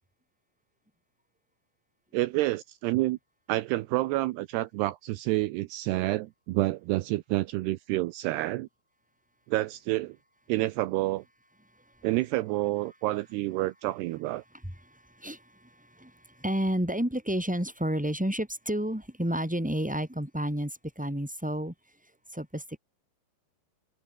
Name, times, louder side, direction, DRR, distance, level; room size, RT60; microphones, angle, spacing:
voice 1, 2.1-3.2 3.5-8.7 9.5-10.2 10.5-11.2 12.0-14.4, right 18 dB, 80° right, 2.6 m, -28 dB
voice 2, 11.7-12.1 14.6-21.7 22.3-22.8, right 1 dB, ahead, 6.2 m, -31 dB
omnidirectional pair, 5.2 m